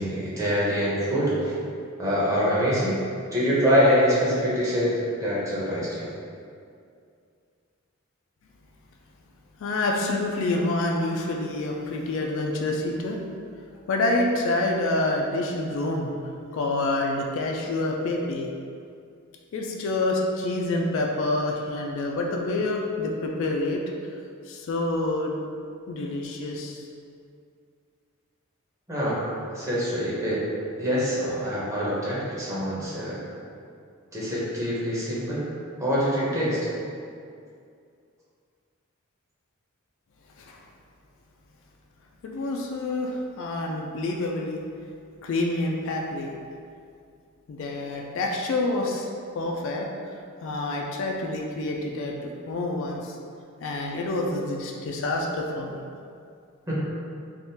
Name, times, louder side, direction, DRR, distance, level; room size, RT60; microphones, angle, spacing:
voice 1, 0.0-1.5 2.0-3.0 3.3-6.1 28.9-30.4 30.8-33.2 34.1-35.4 35.8-36.6 56.7-56.8, equal, 15° right, -9 dB, 0.8 m, -25 dB
voice 2, 9.6-13.2 13.9-16.1 16.5-18.5 19.5-23.8 24.5-25.4 25.9-26.9 40.4-40.6 42.2-44.6 45.2-46.3 47.5-49.1 49.3-49.9 50.4-53.2 53.6-55.7, left 2 dB, 60° left, 0 dB, 0.3 m, -27 dB
3.5 x 2.4 x 2.7 m, 2.4 s
head